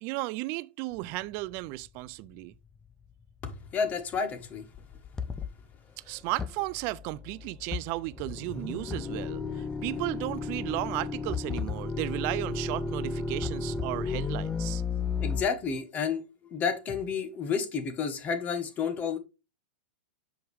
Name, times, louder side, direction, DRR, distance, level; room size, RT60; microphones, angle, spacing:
voice 1, 0.0-2.5 6.1-14.8, right 20 dB, 45° right, 0.3 m, -34 dB
sound 1, 1.6-1.7 3.4-3.5 3.7-3.9 4.4-4.5 4.7-5.7 6.2-15.4, left 4 dB, 10° left, 0.5 m, -33 dB
voice 2, 3.4-4.7 15.2-16.2 16.5-19.2, left 6 dB, 30° left, 1.1 m, -30 dB
6.2 x 4.6 x 3.4 m
hypercardioid pair, 125°, 6 cm